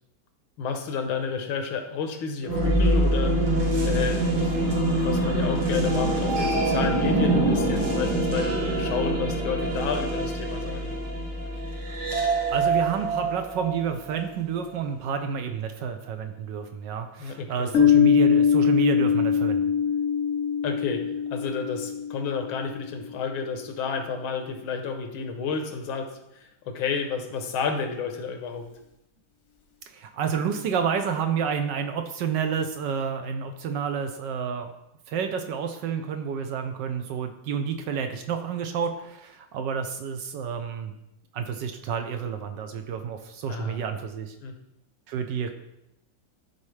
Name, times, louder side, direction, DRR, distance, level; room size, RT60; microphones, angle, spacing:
voice 1, 0.6-3.4 3.8-4.5 4.9-10.9 17.2-17.7 20.6-28.7 43.5-43.8 44.4-44.5, left 5 dB, 85° left, 6 dB, 1.6 m, -31 dB
sound 1, 2.4-14.3, right 1 dB, 90° right, 2.3 m, -25 dB
voice 2, 12.5-19.7 29.9-34.7 35.1-40.9 41.3-44.3 45.1-45.5, right 7 dB, 75° right, 6 dB, 1.1 m, -30 dB
Piano, 17.7-23.1, left 8 dB, 50° left, 1.0 m, -22 dB
12.0 x 4.2 x 3.2 m, 0.85 s
omnidirectional pair, 2.2 m